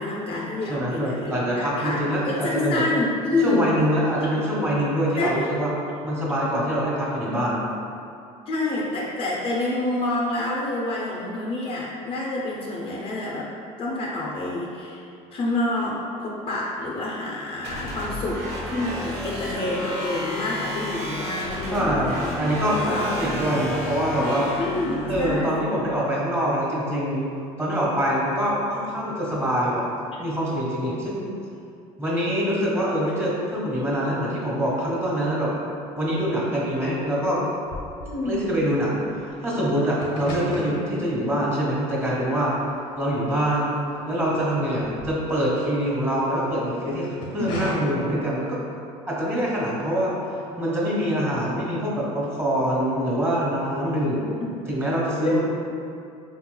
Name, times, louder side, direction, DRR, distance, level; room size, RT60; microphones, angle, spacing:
voice 1, 0.0-2.0 2.2-3.7 4.2-4.4 5.2-5.5 8.5-13.5 13.8-15.0 15.3-22.3 22.7-23.7 24.6-25.6 38.0-38.4 47.4-47.5 55.2-55.3, left 2 dB, 40° left, -4 dB, 0.6 m, -28 dB
voice 2, 0.7-2.8 3.4-5.7 6.0-7.7 21.7-24.5 25.0-27.3 27.6-29.8 30.2-31.3 32.0-35.5 36.0-37.4 38.2-42.6 43.0-43.7 44.0-48.6 49.1-50.2 50.6-54.3 54.6-55.4, equal, 15° right, -6 dB, 1.4 m, -24 dB
sound 1, 17.6-25.2, equal, 85° right, 0.9 m, -32 dB
sound 2, 34.9-35.7 35.9-44.2 44.6-46.3 46.9-47.7, equal, 85° left, 0.9 m, -38 dB
4.2 x 3.0 x 2.2 m, 2.6 s
supercardioid pair, 100°, 14 cm